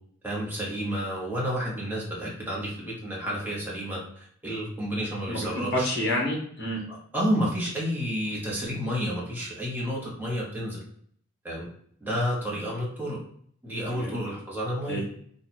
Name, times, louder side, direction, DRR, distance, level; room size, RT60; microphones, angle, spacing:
voice 1, 0.2-5.9 6.9-10.8 11.4-11.7 12.0-13.2 13.6-15.0, equal, 10° right, -5 dB, 0.8 m, -30 dB
voice 2, 5.3-6.8 13.9-14.2 14.9-15.1, equal, 50° left, 0 dB, 0.9 m, -29 dB
2.8 x 2.4 x 4.2 m, 0.62 s
head